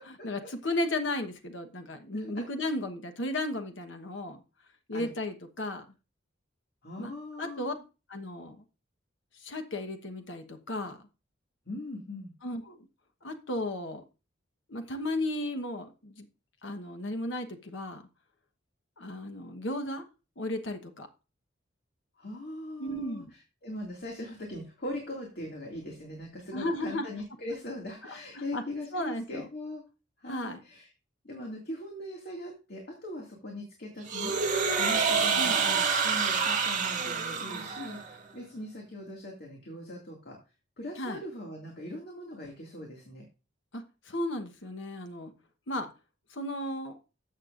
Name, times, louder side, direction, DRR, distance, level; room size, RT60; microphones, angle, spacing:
voice 1, 0.0-4.4 4.9-5.8 7.0-7.1 7.4-7.7 8.1-8.6 9.4-11.0 12.4-12.9 13.2-14.0 14.7-16.3 16.6-18.0 19.0-20.0 20.4-21.1 22.8-23.3 26.5-27.1 28.0-28.6 28.9-29.5 30.3-30.6 35.4-35.6 41.0-41.2 43.7-45.3 45.7-45.9 46.3-47.0, left 1 dB, 70° left, 6 dB, 1.2 m, -34 dB
voice 2, 2.1-2.4 4.9-5.1 6.8-7.8 11.7-12.3 22.2-29.8 30.2-30.9 31.2-40.4 40.8-43.3, left 1 dB, 55° left, 0 dB, 2.2 m, -40 dB
sound 1, 34.1-38.1, right 5 dB, 40° right, 2.0 m, -27 dB
13.5 x 7.5 x 2.5 m, 0.31 s
head